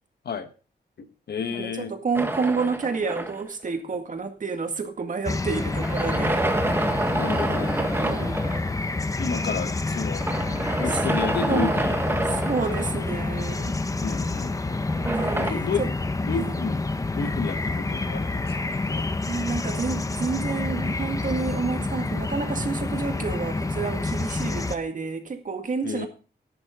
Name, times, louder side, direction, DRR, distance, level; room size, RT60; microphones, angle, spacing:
voice 1, 1.0-1.9 7.1-7.7 9.2-10.2 10.8-12.4 14.0-18.5 18.9-19.2 25.8-26.1, left 5 dB, 65° left, 1.3 m, -32 dB
voice 2, 1.5-6.5 8.0-8.4 10.8-11.0 11.5-11.8 12.2-13.7 15.0-15.9 16.3-16.5 19.3-26.1, right 4 dB, 45° right, 2.0 m, -29 dB
sound 1, 2.1-3.7 5.5-8.7 10.2-13.4 14.9-15.5, right 1 dB, 10° right, 1.4 m, -28 dB
sound 2, 5.2-24.8, left 3 dB, 20° left, 0.8 m, -28 dB
13.0 x 10.5 x 3.7 m
wide cardioid pair, 120°, 18 cm